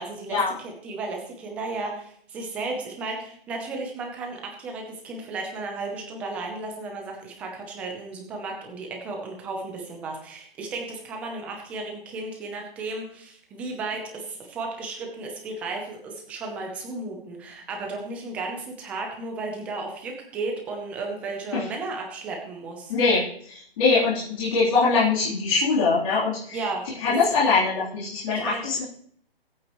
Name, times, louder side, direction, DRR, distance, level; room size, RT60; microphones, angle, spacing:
voice 1, 0.0-22.9 26.5-27.2 28.3-28.6, right 3 dB, 5° right, 1 dB, 0.7 m, -34 dB
voice 2, 22.9-26.6 27.0-28.8, left 4 dB, 35° left, -10 dB, 3.6 m, -22 dB
22.5 x 8.6 x 3.1 m, 0.62 s
hypercardioid pair, 170°, 31 cm